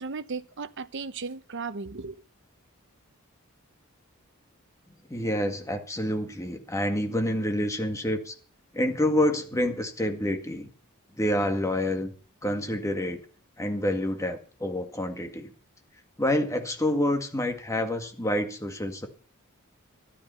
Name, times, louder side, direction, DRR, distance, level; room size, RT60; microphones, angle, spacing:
voice 1, 0.0-2.2, right 4 dB, 60° right, 0.9 m, -35 dB
voice 2, 5.1-8.4 8.7-10.7 11.2-12.1 12.4-13.2 13.6-15.5 16.2-19.1, left 1 dB, 15° left, 1.9 m, -27 dB
13.5 x 12.0 x 5.7 m
head